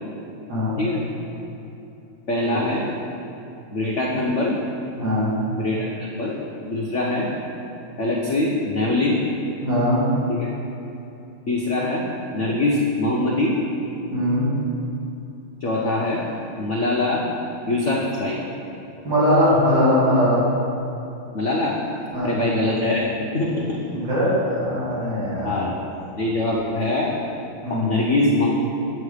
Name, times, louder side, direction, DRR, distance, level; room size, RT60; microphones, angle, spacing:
voice 1, 2.3-2.9 3.7-4.6 5.5-6.4 6.7-7.3 8.0-9.3 10.3-10.5 11.5-12.1 12.3-13.6 15.6-16.2 16.6-17.3 17.7-18.4 21.3-21.8 22.2-23.1 23.3-23.8 25.4-25.8 26.2-27.1 27.7-28.5, left 2 dB, 60° left, -3 dB, 0.7 m, -23 dB
voice 2, 4.9-5.3 9.6-10.0 14.1-14.5 19.0-20.4 22.1-22.3 23.9-25.6 27.6-28.0, left 1 dB, 60° right, -9 dB, 3.2 m, -21 dB
8.3 x 8.3 x 5.0 m, 2.8 s
omnidirectional pair, 2.4 m